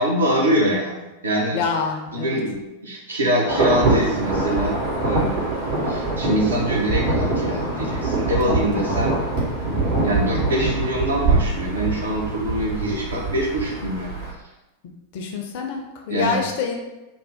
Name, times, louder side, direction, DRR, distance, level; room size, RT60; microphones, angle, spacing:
voice 1, 0.0-1.6 2.1-5.6 5.9-9.2 9.6-14.1 16.1-16.4, equal, 75° right, -2 dB, 0.6 m, -24 dB
voice 2, 1.5-2.4 8.4-8.9 15.1-16.7, left 5 dB, 45° left, 3 dB, 0.4 m, -27 dB
Insect / Thunder / Rain, 3.5-14.3, right 2 dB, 50° right, 1.1 m, -24 dB
2.6 x 2.0 x 3.4 m, 1.0 s
figure-of-eight pair, 90°, 0 cm